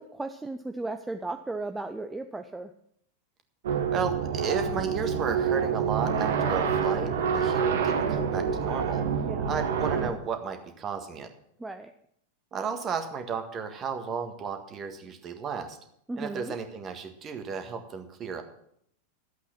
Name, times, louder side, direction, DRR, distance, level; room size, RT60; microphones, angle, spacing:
voice 1, 0.0-2.7 9.2-9.5 11.6-11.9 16.1-16.5, right 2 dB, 10° right, 7 dB, 0.6 m, -35 dB
sound 1, 3.6-10.1, right 6 dB, 60° right, 1.3 m, -27 dB
voice 2, 3.9-9.1 9.5-11.3 12.5-15.8 16.2-18.4, right 5 dB, 30° right, 6 dB, 1.7 m, -34 dB
12.5 x 8.2 x 5.9 m, 0.71 s
figure-of-eight pair, 90°, 0 cm